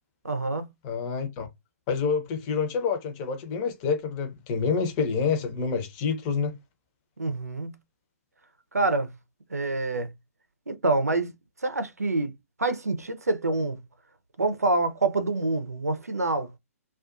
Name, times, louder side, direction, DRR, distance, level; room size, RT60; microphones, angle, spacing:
voice 1, 0.2-0.7 7.2-7.7 8.7-9.1 9.5-10.1 10.7-11.3 11.6-12.3 12.6-13.8 14.4-16.5, right 2 dB, 90° right, 0.6 m, -26 dB
voice 2, 0.8-1.5 1.9-6.5, left 5 dB, 30° left, 0.7 m, -27 dB
2.4 x 2.3 x 2.5 m
figure-of-eight pair, 130°, 8 cm